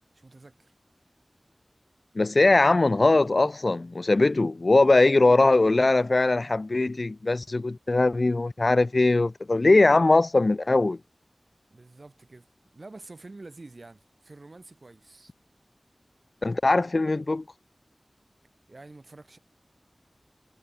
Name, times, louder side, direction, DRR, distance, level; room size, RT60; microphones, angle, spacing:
voice 1, 0.1-0.7 11.7-15.3 18.7-19.4, right 2 dB, 65° right, 5.3 m, -48 dB
voice 2, 2.1-11.0 16.4-17.4, left 2 dB, 65° left, 0.9 m, -21 dB
wide cardioid pair, 50°, 0 cm